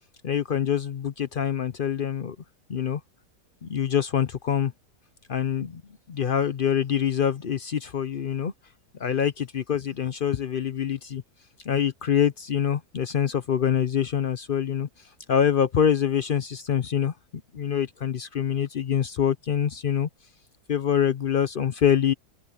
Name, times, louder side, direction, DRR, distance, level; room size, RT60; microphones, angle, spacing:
voice 1, 0.2-2.4 2.7-3.0 3.6-4.7 5.3-5.8 6.1-8.5 9.0-11.2 11.7-14.9 15.3-17.1 17.5-20.1 20.7-22.1, left 8 dB, 60° left, 0.5 m, -25 dB
open air
omnidirectional pair, 1.8 m